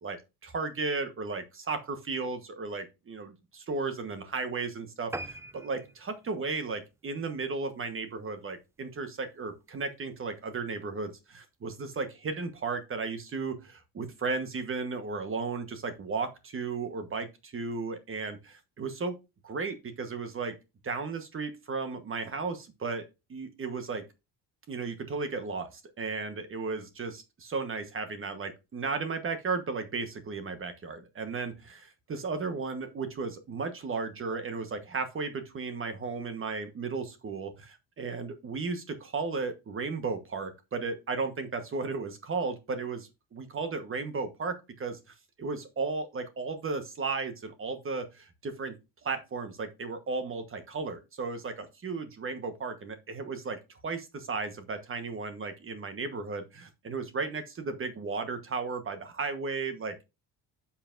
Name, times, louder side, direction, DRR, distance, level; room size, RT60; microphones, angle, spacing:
voice 1, 0.0-19.1 19.4-20.5 20.8-24.0 24.7-45.0 45.4-48.7 49.0-60.0, right 4 dB, 35° right, 9 dB, 1.3 m, -35 dB
sound 1, 5.1-7.9 8.3-8.5 9.0-9.1 9.4-9.5 9.7-9.8, right 2 dB, 10° right, 0.3 m, -43 dB
9.5 x 5.8 x 2.6 m, 0.26 s
cardioid pair, 115°, 38 cm